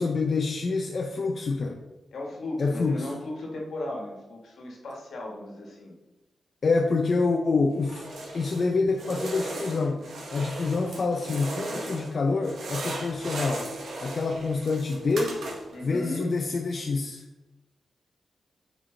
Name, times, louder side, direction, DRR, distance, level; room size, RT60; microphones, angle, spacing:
voice 1, 0.0-1.8 2.6-3.1 6.6-8.0 8.3-10.0 10.3-13.7 14.0-15.4 15.8-17.2, left 3 dB, 50° left, 2 dB, 0.7 m, -26 dB
voice 2, 2.1-5.9 15.7-16.4, left 1 dB, 80° left, 0 dB, 1.8 m, -36 dB
sound 1, 7.8-8.7 8.9-12.1 12.4-15.8, right 2 dB, 85° right, 1.7 m, -37 dB
8.6 x 4.8 x 3.9 m, 1.1 s
wide cardioid pair, 110°, 0 cm